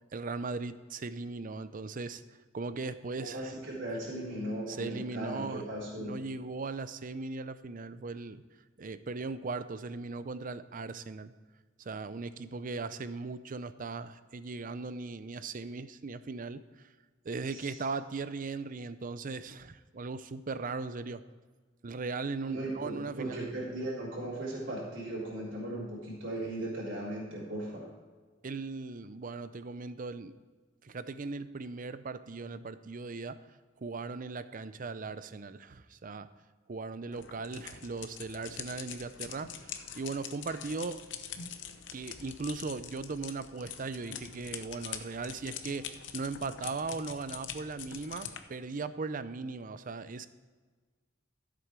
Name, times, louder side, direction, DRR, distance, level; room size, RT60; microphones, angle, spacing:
voice 1, 0.1-2.2 2.5-3.5 4.7-5.7 6.0-8.4 8.8-11.3 11.8-16.6 17.2-21.2 21.8-23.5 28.4-30.3 30.8-33.4 33.8-36.3 36.7-41.0 41.9-50.3, right 3 dB, 45° right, 13 dB, 0.5 m, -38 dB
voice 2, 3.2-6.2 17.5-17.8 22.5-27.9, right 1 dB, 70° right, -6 dB, 3.6 m, -37 dB
sound 1, 37.1-48.4, left 8 dB, 65° left, 0.8 m, -44 dB
13.5 x 7.8 x 4.7 m, 1.4 s
head